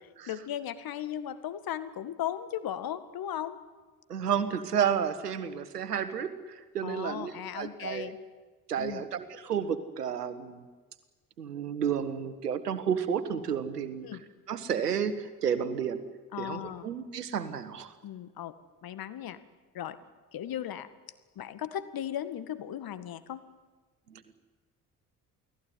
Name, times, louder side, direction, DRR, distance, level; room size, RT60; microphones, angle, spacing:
voice 1, 0.3-3.6 6.8-8.2 8.8-9.1 14.0-14.2 16.3-16.9 18.0-18.6 18.8-19.4 19.7-20.0 20.3-20.9 21.4-23.4, left 10 dB, 50° left, 13 dB, 2.0 m, -36 dB
voice 2, 4.1-8.1 8.7-10.6 11.4-14.1 14.5-16.0 16.4-17.9 24.1-24.3, right 8 dB, 80° right, 13 dB, 1.4 m, -31 dB
29.0 x 18.5 x 9.6 m, 1.4 s
figure-of-eight pair, 45°, 46 cm